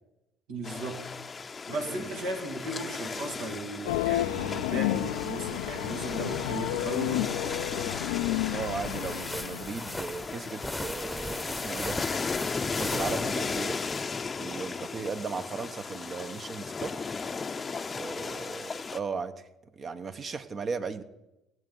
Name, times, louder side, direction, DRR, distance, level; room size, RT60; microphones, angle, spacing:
voice 1, 0.5-1.0 1.7-7.3, right 2 dB, 75° right, 2 dB, 2.5 m, -36 dB
sound 1, 0.6-19.0, left 4 dB, 30° left, 0.7 m, -36 dB
sound 2, 3.9-10.0, left 15 dB, 85° left, 0.4 m, -31 dB
voice 2, 8.5-12.0 12.8-13.8 14.4-16.9 17.9-19.5 19.8-21.0, right 5 dB, 40° right, 10 dB, 1.1 m, -36 dB
sound 3, 8.6-14.0, left 1 dB, 5° left, 1.0 m, -38 dB
18.0 x 8.0 x 5.5 m, 0.95 s
hypercardioid pair, 60°, 0 cm